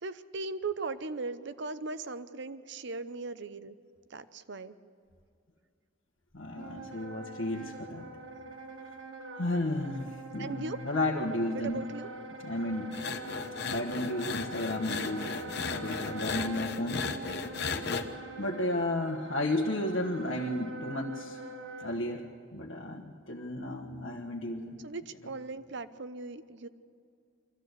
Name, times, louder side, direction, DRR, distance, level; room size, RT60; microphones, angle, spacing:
voice 1, 0.0-3.7 4.1-4.8 10.4-10.8 11.5-12.1 24.8-26.7, right 3 dB, 60° right, 13 dB, 0.8 m, -38 dB
voice 2, 6.3-8.1 9.3-11.8 12.4-12.9 13.7-17.1 18.4-21.4 21.8-22.3 22.5-24.8, left 1 dB, 85° left, -1 dB, 1.5 m, -33 dB
Wind instrument woodwind instrument, 6.5-22.0, right 2 dB, 85° right, 1.6 m, -44 dB
sound 1, 12.9-18.0, left 5 dB, 55° left, 1.1 m, -36 dB
23.5 x 15.0 x 8.1 m, 2.4 s
head